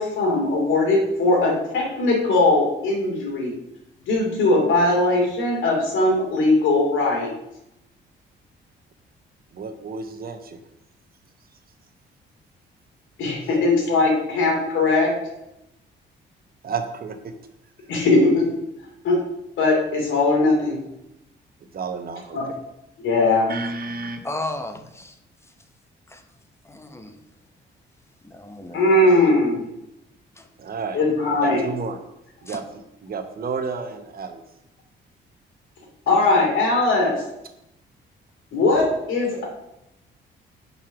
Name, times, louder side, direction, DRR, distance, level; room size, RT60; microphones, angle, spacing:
voice 1, 0.0-3.5 4.1-7.3 13.2-15.1 17.9-18.5 19.0-19.2 19.6-20.8 22.3-22.5 23.0-23.5 28.7-29.6 30.9-31.6 36.1-37.1 38.5-39.4, left 2 dB, 80° left, -1 dB, 2.8 m, -20 dB
voice 2, 9.5-10.6 16.6-17.3 21.7-22.4 23.5-24.2 28.7-29.2 30.6-31.0 31.4-32.0 32.4-34.4, right 5 dB, 50° right, 7 dB, 1.0 m, -31 dB
voice 3, 24.2-25.1 26.1-26.2 26.6-27.2 28.2-28.8 30.4-30.5 32.5-32.6, left 2 dB, 15° left, 7 dB, 0.9 m, -34 dB
5.5 x 4.7 x 6.0 m, 0.84 s
cardioid pair, 90°, 20 cm